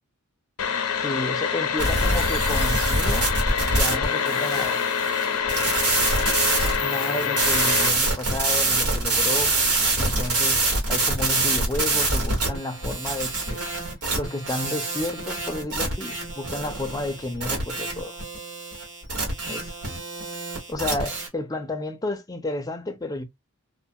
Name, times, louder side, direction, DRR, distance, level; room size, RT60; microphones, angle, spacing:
sound 1, 0.6-7.9, left 7 dB, 85° left, 0.6 m, -26 dB
voice 1, 1.0-3.3 3.7-4.8 6.8-9.6 10.0-13.6 14.1-18.2 19.5-19.7 20.7-23.2, left 2 dB, 15° left, 0.4 m, -31 dB
sound 2, 1.8-21.3, right 2 dB, 85° right, 1.3 m, -25 dB
2.4 x 2.3 x 2.5 m
head